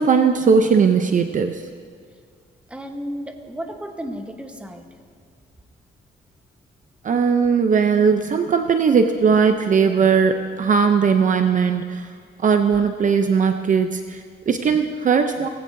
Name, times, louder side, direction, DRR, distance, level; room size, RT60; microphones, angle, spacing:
voice 1, 0.0-1.6 7.0-12.1 12.4-15.5, right 6 dB, 45° right, 7 dB, 0.6 m, -18 dB
voice 2, 2.7-4.9, equal, 5° right, 4 dB, 1.1 m, -33 dB
19.0 x 16.0 x 2.7 m, 2.1 s
cardioid pair, 125°, 19 cm